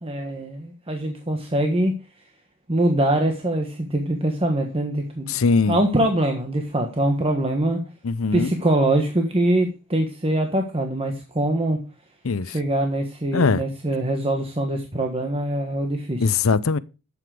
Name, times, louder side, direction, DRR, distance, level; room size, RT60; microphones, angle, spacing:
voice 1, 0.0-2.0 2.7-5.3 5.7-7.8 8.3-11.8 12.4-16.3, right 1 dB, 25° right, 1.4 m, -23 dB
voice 2, 5.3-5.8 8.0-8.5 12.2-12.5 13.3-13.6 16.2-16.8, left 4 dB, 70° left, 0.6 m, -20 dB
11.5 x 7.8 x 4.9 m
head